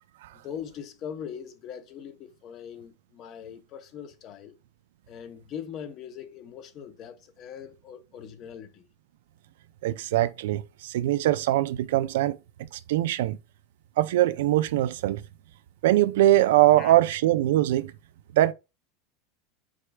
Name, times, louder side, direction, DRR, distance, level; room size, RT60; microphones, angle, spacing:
voice 1, 0.3-4.6 5.1-8.9 16.8-17.0, left 8 dB, 30° left, 0.6 m, -41 dB
voice 2, 9.8-12.4 12.9-13.4 14.0-15.2 15.8-17.9 18.3-18.5, right 14 dB, 75° right, 0.4 m, -22 dB
4.9 x 4.4 x 2.2 m
supercardioid pair, 180°, 0 cm